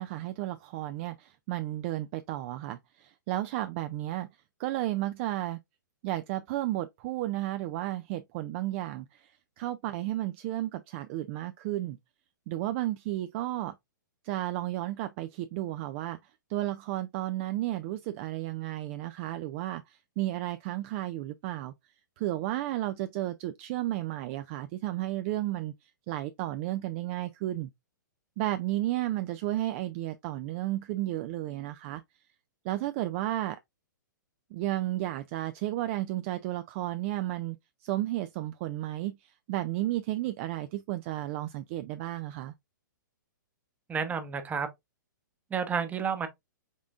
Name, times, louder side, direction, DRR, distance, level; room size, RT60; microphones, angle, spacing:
voice 1, 0.0-4.3 4.6-5.6 6.0-12.0 12.5-13.8 14.2-16.2 16.5-21.7 22.2-27.7 28.4-32.0 32.6-33.6 34.5-37.6 37.8-42.5, right 15 dB, 40° right, 0.3 m, -33 dB
voice 2, 43.9-44.7 45.5-46.3, right 6 dB, 15° right, 0.8 m, -30 dB
5.4 x 3.6 x 2.4 m
hypercardioid pair, 125°, 11 cm